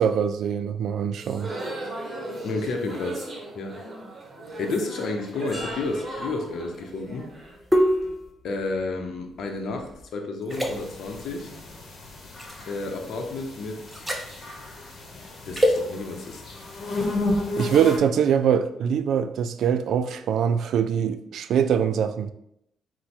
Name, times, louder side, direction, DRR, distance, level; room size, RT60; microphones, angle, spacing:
voice 1, 0.0-1.5 17.6-22.3, right 8 dB, 70° right, 11 dB, 0.3 m, -23 dB
sound 1, 1.2-8.1, right 2 dB, 35° right, 1.1 m, -37 dB
voice 2, 2.4-3.3 3.5-3.8 4.6-7.3 8.4-11.5 12.7-14.0 15.5-16.4, left 3 dB, 65° left, 3 dB, 0.8 m, -31 dB
sound 2, 5.5-10.0 10.5-10.7 12.4-12.6 13.9-14.3 15.5-15.8, equal, 5° right, 0.7 m, -27 dB
sound 3, 10.5-18.0, left 2 dB, 50° left, 1.1 m, -33 dB
4.5 x 2.2 x 4.2 m, 0.76 s
cardioid pair, 90°, 0 cm